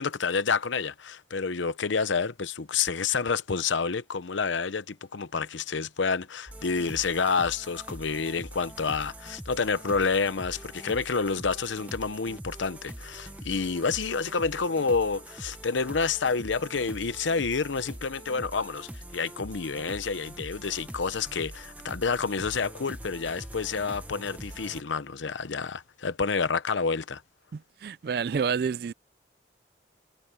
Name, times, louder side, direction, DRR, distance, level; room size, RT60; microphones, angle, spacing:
voice 1, 0.0-27.2, left 5 dB, 85° left, 0.8 m, -29 dB
sound 1, 6.5-24.8, right 1 dB, 10° right, 0.9 m, -43 dB
voice 2, 27.5-28.9, right 6 dB, 55° right, 0.3 m, -29 dB
head